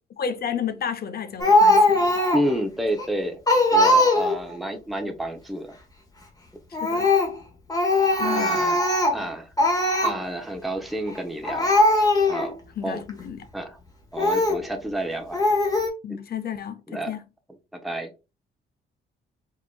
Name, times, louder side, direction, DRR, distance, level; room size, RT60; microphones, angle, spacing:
voice 1, 0.2-2.2 6.8-7.1 8.2-8.7 12.8-13.4 16.0-17.2, left 8 dB, 50° left, 0.8 m, -31 dB
Speech, 1.4-2.5 3.0-3.1 3.5-4.5 6.7-7.4 7.7-9.2 9.6-10.2 11.1-11.2 11.4-12.5 13.1-13.2 14.2-14.6 15.3-15.9, left 1 dB, 20° left, 1.5 m, -20 dB
voice 2, 2.3-3.4 3.7-5.8 8.2-8.8 9.1-9.5 10.0-11.8 12.3-12.6 12.8-13.0 13.5-13.8 14.1-15.4 16.9-17.1 17.7-18.1, right 1 dB, ahead, 0.8 m, -30 dB
4.8 x 2.9 x 2.3 m
cardioid pair, 90°, 20 cm